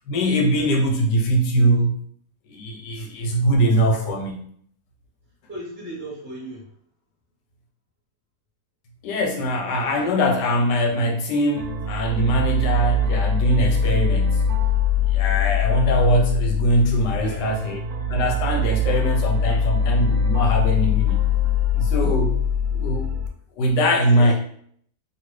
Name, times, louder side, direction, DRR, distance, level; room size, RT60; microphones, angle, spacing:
voice 1, 0.1-1.9 2.5-4.5 9.0-14.5 15.1-17.8 18.1-21.3 21.7-22.4 22.7-23.1 23.6-24.3, equal, 85° left, 1 dB, 1.3 m, -22 dB
voice 2, 5.5-6.7 17.1-17.5 19.4-19.6 24.1-24.3, right 2 dB, 15° right, -5 dB, 0.4 m, -35 dB
sound 1, 11.6-23.3, left 4 dB, 70° right, 0.9 m, -22 dB
3.0 x 2.5 x 3.1 m, 0.63 s
omnidirectional pair, 1.8 m